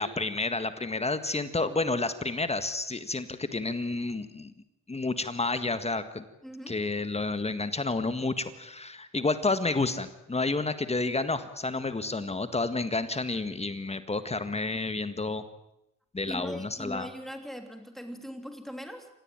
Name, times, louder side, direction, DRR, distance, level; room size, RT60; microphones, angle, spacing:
voice 1, 0.0-4.5 4.9-6.2 6.7-15.4 16.1-17.1, left 3 dB, 20° left, 11 dB, 1.7 m, -30 dB
voice 2, 6.4-6.8 16.3-19.1, equal, ahead, 6 dB, 3.2 m, -40 dB
28.0 x 15.5 x 9.0 m, 0.86 s
cardioid pair, 90°, 30 cm